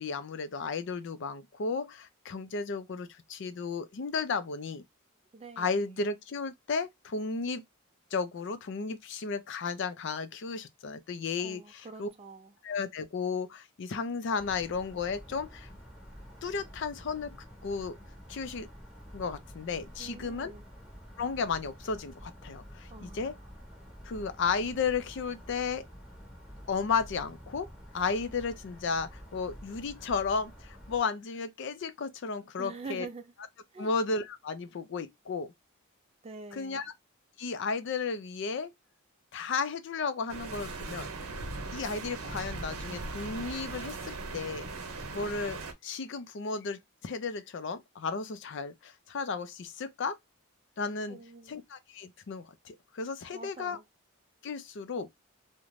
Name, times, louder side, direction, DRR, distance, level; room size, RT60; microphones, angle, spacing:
voice 1, 0.0-4.8 5.6-7.6 8.1-11.6 12.0-12.1 12.6-15.7 16.4-17.3 17.6-18.0 18.3-18.7 19.1-20.5 21.2-23.3 24.0-25.8 26.7-27.7 27.9-33.1 33.8-35.5 36.5-36.8 37.4-38.7 39.3-41.3 41.7-44.7 45.1-50.2 50.8-51.2 51.5-53.8 54.4-55.1, left 5 dB, 60° left, 0.4 m, -34 dB
voice 2, 5.3-6.0 11.4-12.6 20.0-20.7 22.9-23.5 32.6-33.3 33.7-33.9 36.2-36.9 51.1-51.6 53.3-53.8, right 4 dB, 30° right, 0.4 m, -46 dB
sound 1, 14.4-31.0, equal, ahead, 0.8 m, -49 dB
sound 2, 40.3-45.7, right 3 dB, 90° right, 0.6 m, -39 dB
2.5 x 2.1 x 3.0 m
head